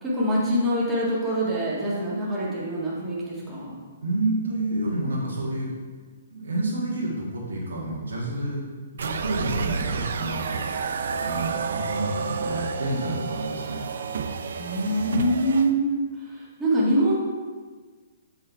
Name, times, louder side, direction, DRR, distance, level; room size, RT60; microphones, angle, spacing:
voice 1, 0.0-3.8 14.6-16.0 16.3-17.2, right 1 dB, 5° right, -8 dB, 1.7 m, -24 dB
voice 2, 4.0-5.7 6.3-8.6 8.9-10.6 11.2-13.8, right 1 dB, 85° right, -5 dB, 1.7 m, -29 dB
sound 1, 9.0-15.7, right 5 dB, 70° right, 0.5 m, -30 dB
6.6 x 4.1 x 4.6 m, 1.5 s
hypercardioid pair, 145°, 0 cm